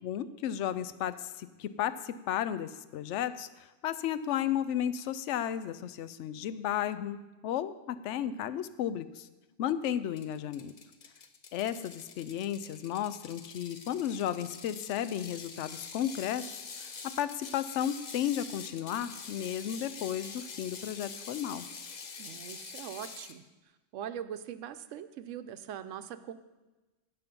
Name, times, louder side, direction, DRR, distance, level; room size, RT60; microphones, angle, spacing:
voice 1, 0.0-7.2 7.4-9.3 9.6-10.7 11.5-21.7, left 10 dB, 75° left, 14 dB, 0.9 m, -34 dB
Ratchet pawl, 10.2-23.4, left 5 dB, 40° left, 0.7 m, -46 dB
voice 2, 22.2-23.4 23.9-26.3, right 9 dB, 80° right, 11 dB, 1.0 m, -41 dB
16.0 x 5.8 x 5.3 m, 1.1 s
omnidirectional pair, 1.3 m